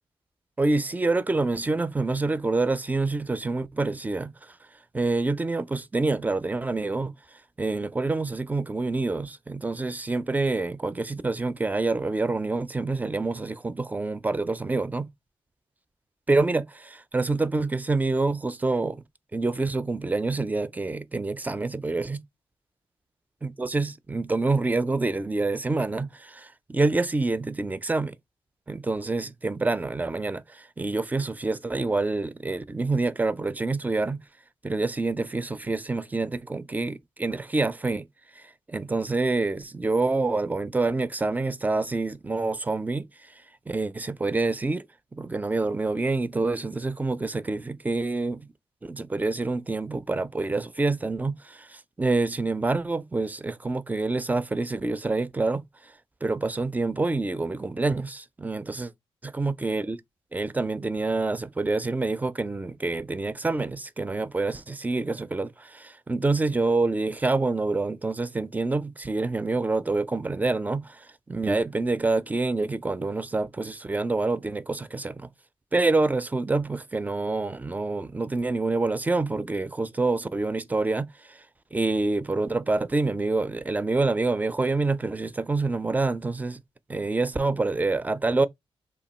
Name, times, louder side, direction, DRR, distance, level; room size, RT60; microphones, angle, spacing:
voice 1, 0.6-4.5 4.9-7.1 7.6-15.1 16.3-19.0 19.3-22.2 23.4-28.1 28.7-34.2 34.6-38.1 38.4-38.5 38.7-43.1 43.7-44.9 45.1-48.5 48.8-55.6 56.2-58.9 59.2-60.0 60.3-75.3 75.7-81.4 81.7-86.6 86.9-88.5, right 3 dB, 15° right, 0.3 m, -27 dB
3.0 x 2.3 x 4.1 m
cardioid pair, 85°, 10 cm